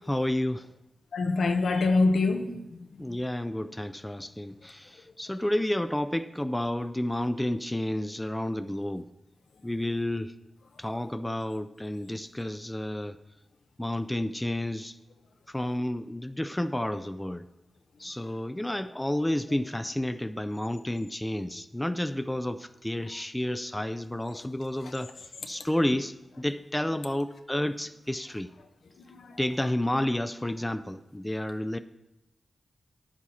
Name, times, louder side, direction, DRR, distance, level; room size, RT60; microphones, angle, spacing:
voice 1, 0.1-0.7 3.0-9.1 9.6-10.3 10.8-13.2 13.8-15.0 15.5-17.5 18.0-25.1 25.5-28.5 29.4-31.8, left 1 dB, 10° left, 11 dB, 0.3 m, -30 dB
voice 2, 1.1-3.0 29.1-29.4, left 3 dB, 80° left, 6 dB, 0.9 m, -25 dB
10.5 x 7.4 x 4.2 m, 0.93 s
wide cardioid pair, 90°, 0 cm